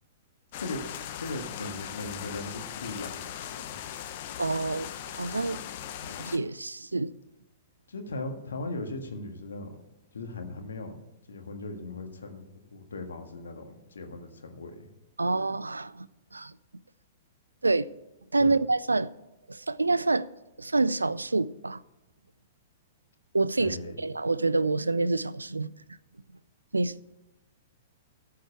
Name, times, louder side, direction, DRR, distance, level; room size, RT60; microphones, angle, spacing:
sound 1, 0.5-6.4, left 10 dB, 50° left, 0.8 m, -39 dB
voice 1, 0.6-3.8 7.9-9.7 10.1-11.0 11.3-12.4 12.7-14.9 18.4-18.6 23.6-24.0, left 2 dB, 75° left, 1.6 m, -38 dB
voice 2, 4.4-5.6 6.0-7.1 15.2-16.5 17.6-17.9 18.3-19.1 19.5-20.3 20.6-21.8 23.3-25.7 26.7-26.9, right 3 dB, 90° right, 0.4 m, -27 dB
14.0 x 4.7 x 8.5 m
figure-of-eight pair, 110°, 0 cm